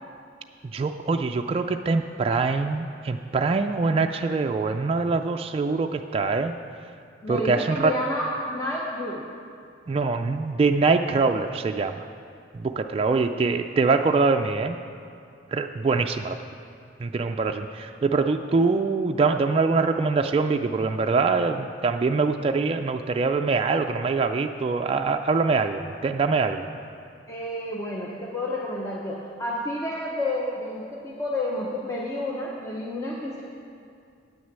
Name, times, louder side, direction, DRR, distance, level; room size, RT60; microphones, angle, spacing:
voice 1, 0.7-6.5 7.3-8.0 9.9-12.1 12.5-14.8 15.5-16.4 17.0-26.7, right 4 dB, 30° right, 5 dB, 0.3 m, -24 dB
voice 2, 7.2-9.3 27.3-33.4, left 1 dB, 15° left, -3 dB, 0.8 m, -30 dB
8.8 x 6.3 x 8.1 m, 2.4 s
head